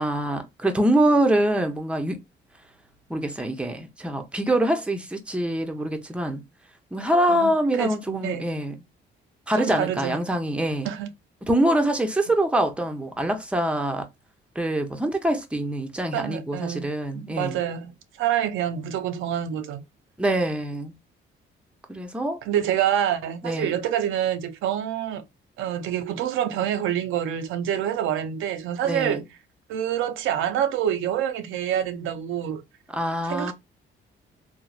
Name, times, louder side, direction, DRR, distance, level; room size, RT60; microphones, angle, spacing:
voice 1, 0.0-2.2 3.1-6.4 6.9-8.8 9.5-10.9 11.4-14.1 14.6-17.6 20.2-20.9 21.9-22.4 23.4-23.7 28.8-29.2 32.9-33.5, right 1 dB, 5° right, 0.6 m, -24 dB
voice 2, 7.3-8.5 9.6-10.2 10.8-11.1 16.1-16.9 17.1-17.9 18.2-19.8 22.5-25.2 25.6-29.2 29.7-32.6 33.3-33.5, right 10 dB, 85° right, 0.4 m, -27 dB
3.1 x 2.0 x 2.3 m
cardioid pair, 90°, 20 cm